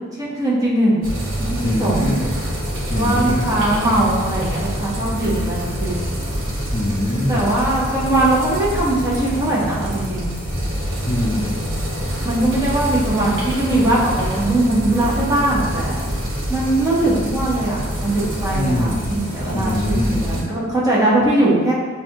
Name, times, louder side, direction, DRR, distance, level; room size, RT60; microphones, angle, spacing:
voice 1, 0.2-1.0 1.5-2.1 2.9-5.9 7.3-10.3 12.2-16.0 16.5-21.7, right 1 dB, 15° right, -7 dB, 1.2 m, -20 dB
sound 1, 1.0-20.4, equal, 65° right, 1.1 m, -26 dB
voice 2, 1.6-2.3 2.9-3.5 6.7-7.5 11.0-11.5 18.5-19.0 19.5-20.2, left 1 dB, 30° left, -2 dB, 0.5 m, -22 dB
6.8 x 2.5 x 3.0 m, 1.5 s
head